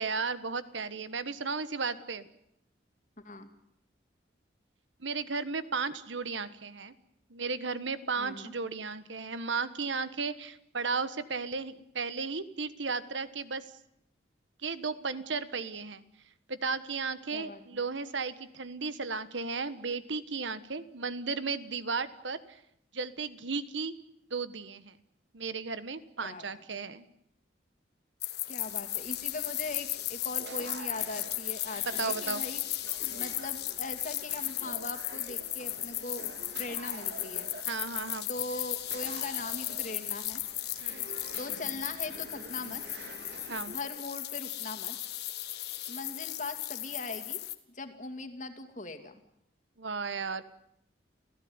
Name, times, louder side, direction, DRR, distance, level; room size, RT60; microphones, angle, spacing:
voice 1, 0.0-2.2 5.0-6.9 7.3-13.6 14.6-16.0 16.5-22.6 22.9-23.9 24.3-25.0 25.3-27.1 31.8-32.4 37.7-38.3 40.8-41.1 43.5-43.8 49.8-50.4, right 4 dB, 75° right, 13 dB, 1.5 m, -34 dB
voice 2, 8.2-8.5 17.3-17.6 26.2-26.5 28.5-32.6 33.1-36.3 36.6-37.5 38.3-40.4 41.4-42.8 43.7-45.0 45.9-47.4 47.7-49.2, left 2 dB, 40° left, 7 dB, 2.6 m, -40 dB
sound 1, 28.2-47.5, left 15 dB, 55° left, 1.7 m, -36 dB
sound 2, 28.6-43.8, right 3 dB, 60° right, 2.6 m, -48 dB
30.0 x 16.0 x 9.7 m, 0.78 s
head